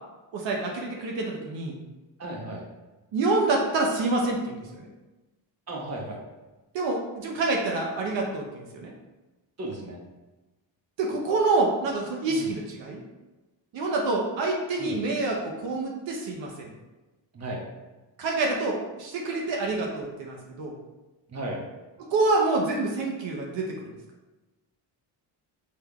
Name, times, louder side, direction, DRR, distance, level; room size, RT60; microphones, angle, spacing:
voice 1, 0.3-1.7 3.1-4.8 6.7-8.9 11.0-13.0 13.7-16.7 18.2-20.7 22.0-23.8, right 3 dB, 75° right, 0 dB, 0.9 m, -27 dB
voice 2, 2.2-2.6 5.7-6.2 9.6-10.0 12.3-12.5 14.8-15.0 17.3-17.6 21.3-21.6, right 1 dB, 35° right, 0 dB, 1.1 m, -35 dB
6.6 x 3.4 x 2.3 m, 1.1 s
cardioid pair, 80°, 45 cm